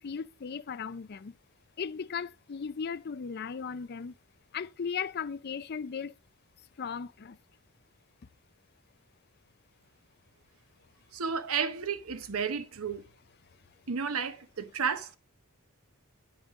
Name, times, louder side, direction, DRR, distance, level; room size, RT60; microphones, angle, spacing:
voice 1, 0.0-1.3 1.8-4.1 4.5-6.2 6.8-7.4, left 6 dB, 45° left, 0.4 m, -37 dB
voice 2, 11.1-13.1 13.9-15.2, right 6 dB, 75° right, 0.9 m, -32 dB
9.5 x 8.7 x 3.6 m
head